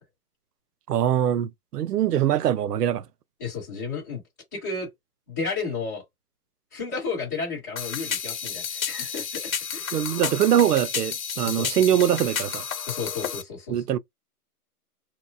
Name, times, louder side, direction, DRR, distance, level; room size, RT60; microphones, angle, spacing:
voice 1, 0.9-3.0 9.9-12.6 13.7-14.0, right 10 dB, 90° right, 0.6 m, -23 dB
voice 2, 3.4-4.2 4.5-4.9 5.3-6.0 6.7-10.0 11.4-11.7 12.9-13.8, left 4 dB, 10° left, 1.2 m, -32 dB
sound 1, 7.8-13.4, left 7 dB, 60° left, 0.9 m, -31 dB
2.9 x 2.3 x 2.5 m
hypercardioid pair, 180°, 46 cm